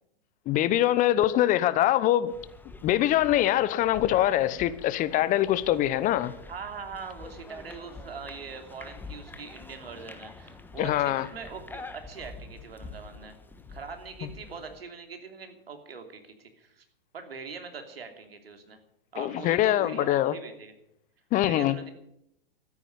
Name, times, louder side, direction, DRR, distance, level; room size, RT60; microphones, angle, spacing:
voice 1, 0.5-2.3 2.8-6.3 10.8-11.3 19.2-20.3 21.3-21.7, left 13 dB, 25° left, 0.8 m, -23 dB
sound 1, 2.3-14.8, left 3 dB, 5° left, 1.2 m, -46 dB
voice 2, 6.5-13.4 13.7-16.8 17.1-18.8 19.1-20.7 21.4-21.9, right 5 dB, 80° right, 3.0 m, -42 dB
13.5 x 9.9 x 8.9 m
hypercardioid pair, 115°, 29 cm